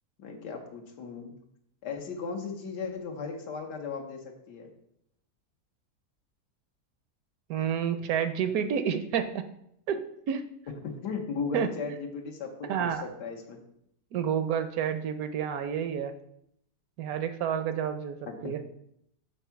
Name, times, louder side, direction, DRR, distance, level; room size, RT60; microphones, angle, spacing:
voice 1, 0.2-1.3 1.8-4.7 10.8-13.6 18.4-18.5, left 5 dB, 90° left, 2 dB, 1.6 m, -36 dB
voice 2, 7.5-9.4 9.9-10.5 11.5-11.7 12.6-13.0 14.1-16.1 17.0-18.6, right 8 dB, 70° right, 9 dB, 0.9 m, -29 dB
7.1 x 3.5 x 5.7 m, 0.75 s
omnidirectional pair, 1.8 m